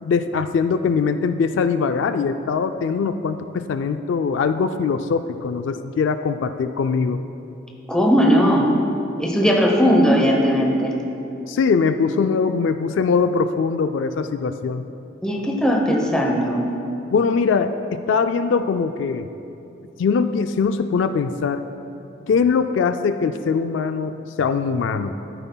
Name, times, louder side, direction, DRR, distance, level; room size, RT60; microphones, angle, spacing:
voice 1, 0.0-7.2 11.5-14.8 17.1-19.3 20.0-21.6 22.3-25.2, left 5 dB, 65° left, 9 dB, 0.3 m, -22 dB
voice 2, 7.9-8.7 9.2-10.9 15.2-16.7, equal, 5° left, 0 dB, 0.8 m, -18 dB
13.5 x 9.0 x 2.2 m, 2.8 s
head